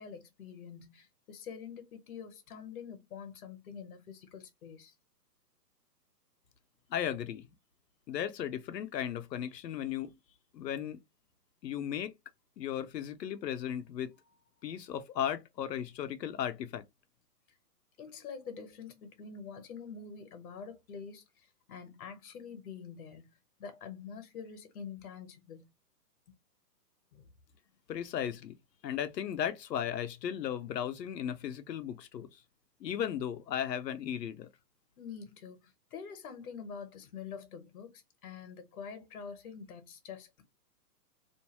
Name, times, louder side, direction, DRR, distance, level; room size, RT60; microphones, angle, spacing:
voice 1, 0.0-4.9 18.0-23.3 23.6-25.7 27.1-27.3 35.0-40.4, left 6 dB, 60° left, 0.9 m, -46 dB
voice 2, 6.9-7.5 8.1-10.1 10.5-11.0 11.6-12.1 12.6-14.1 14.6-16.8 27.9-28.6 28.8-32.3 32.8-34.5, left 9 dB, 90° left, 0.7 m, -36 dB
2.6 x 2.2 x 2.9 m
hypercardioid pair, 160°, 48 cm